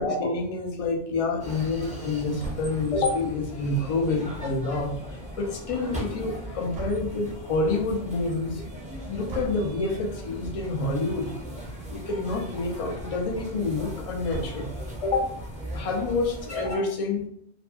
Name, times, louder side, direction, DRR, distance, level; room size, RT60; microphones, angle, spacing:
voice 1, 0.0-8.6 9.1-11.3 11.9-14.7 15.0-15.4 15.7-17.2, left 3 dB, 50° left, 1 dB, 0.4 m, -28 dB
sound 1, 1.4-16.8, equal, 10° right, 0.4 m, -38 dB
sound 2, 2.4-2.9 6.7-7.3 9.3-9.7 10.9-11.2 11.6-11.7 11.9-12.0 14.3-14.9, right 4 dB, 60° right, 1.0 m, -38 dB
2.5 x 2.5 x 2.3 m, 0.72 s
omnidirectional pair, 1.1 m